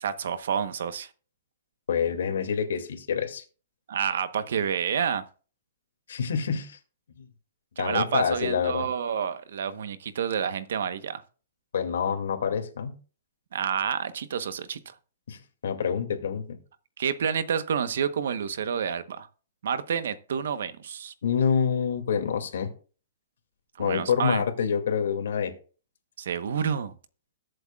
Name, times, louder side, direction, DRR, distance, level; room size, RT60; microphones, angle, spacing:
voice 1, 0.0-1.1 3.9-5.2 7.8-11.2 13.5-14.9 17.0-19.3 19.6-21.1 23.8-24.4 26.2-26.9, right 7 dB, 60° right, 1.0 m, -29 dB
voice 2, 1.9-3.4 6.1-6.8 7.8-8.9 11.7-12.9 15.3-16.6 21.2-22.7 23.8-25.5, left 7 dB, 70° left, 2.3 m, -27 dB
21.5 x 7.9 x 2.4 m
hypercardioid pair, 175°, 0 cm